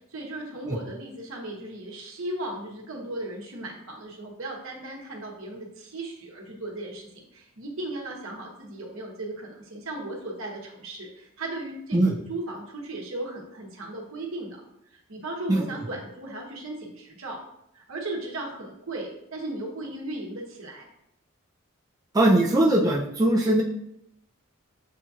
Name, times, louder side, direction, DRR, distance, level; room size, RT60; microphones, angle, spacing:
voice 1, 0.0-14.6 14.9-17.4 17.7-20.9, right 2 dB, 70° right, 0 dB, 1.0 m, -36 dB
voice 2, 22.1-23.6, right 1 dB, 15° right, -3 dB, 0.4 m, -20 dB
7.3 x 2.7 x 2.4 m, 0.78 s
head